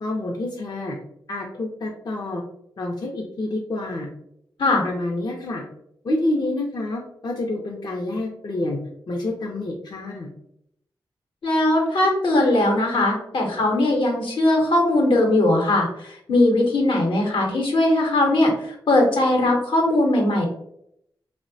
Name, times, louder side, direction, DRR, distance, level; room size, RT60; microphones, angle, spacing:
voice 1, 0.0-1.0 1.3-2.4 2.8-4.1 4.8-5.6 6.0-8.8 9.1-10.3, left 2 dB, 50° left, -1 dB, 0.5 m, -28 dB
voice 2, 11.4-20.5, left 1 dB, 75° left, 0 dB, 0.8 m, -20 dB
2.6 x 2.1 x 2.6 m, 0.74 s
cardioid pair, 60°, 9 cm